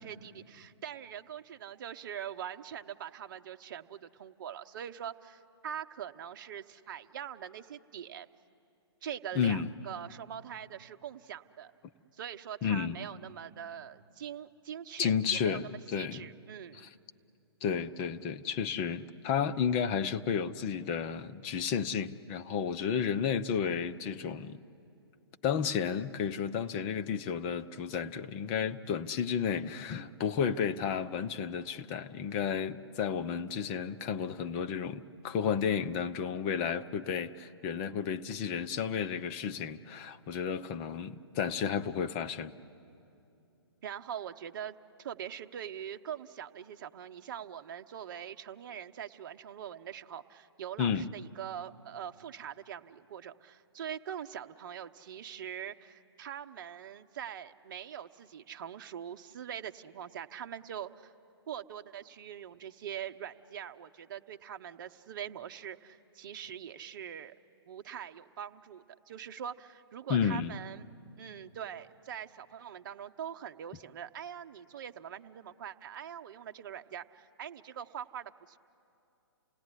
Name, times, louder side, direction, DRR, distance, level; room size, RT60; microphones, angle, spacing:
voice 1, 0.0-8.3 9.0-11.7 12.1-16.9 43.8-61.1 61.5-67.3 67.7-70.8 71.2-78.6, right 9 dB, 50° right, 0.9 m, -43 dB
voice 2, 9.3-9.7 12.6-13.0 15.0-16.2 17.6-24.6 25.4-42.5 50.8-51.1 70.1-70.5, left 7 dB, 25° left, 0.7 m, -32 dB
28.5 x 18.0 x 9.9 m
hypercardioid pair, 135°, 14 cm